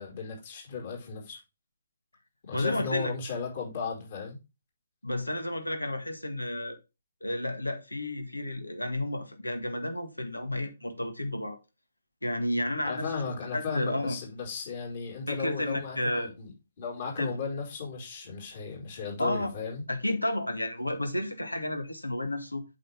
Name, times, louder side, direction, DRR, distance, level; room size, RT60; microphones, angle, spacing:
voice 1, 0.0-1.4 2.4-4.4 12.8-19.8, left 5 dB, 40° left, 4.7 m, -35 dB
voice 2, 2.5-3.1 5.0-6.8 7.2-11.6 12.2-14.2 15.3-16.3 17.2-17.4 19.2-19.5 19.9-22.6, left 1 dB, 80° left, 1.8 m, -32 dB
8.3 x 6.5 x 3.6 m
figure-of-eight pair, 135°, 0 cm